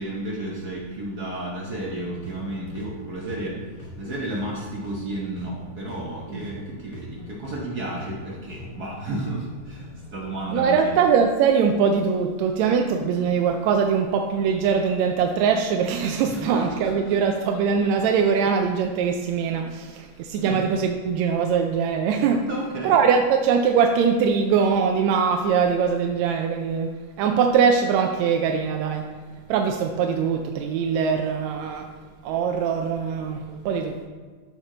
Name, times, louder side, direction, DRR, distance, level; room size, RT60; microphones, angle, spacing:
voice 1, 0.0-3.5 4.0-9.4 9.7-9.9 10.1-10.9 16.3-17.2 20.4-20.6 22.5-23.0 33.6-33.7, right 1 dB, 60° right, -3 dB, 1.0 m, -32 dB
sound 1, 1.8-10.9, left 1 dB, 60° left, 4.1 m, -43 dB
voice 2, 10.5-22.5 22.8-29.1 29.5-31.9 32.2-34.1, right 6 dB, 80° right, 4 dB, 1.8 m, -22 dB
13.5 x 4.7 x 3.8 m, 1.5 s
omnidirectional pair, 3.3 m